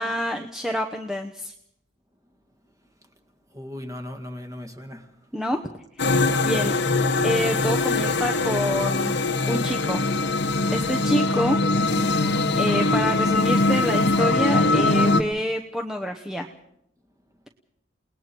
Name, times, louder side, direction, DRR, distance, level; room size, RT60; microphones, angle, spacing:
voice 1, 0.0-1.5 5.3-5.6 6.0-6.7 7.2-9.2 9.5-10.0 10.7-11.6 12.6-16.5, equal, ahead, 4 dB, 0.9 m, -27 dB
voice 2, 3.5-5.3, left 1 dB, 15° right, 6 dB, 2.0 m, -38 dB
sound 1, 6.0-15.2, left 2 dB, 60° left, 1.2 m, -22 dB
29.5 x 19.5 x 4.6 m, 0.76 s
head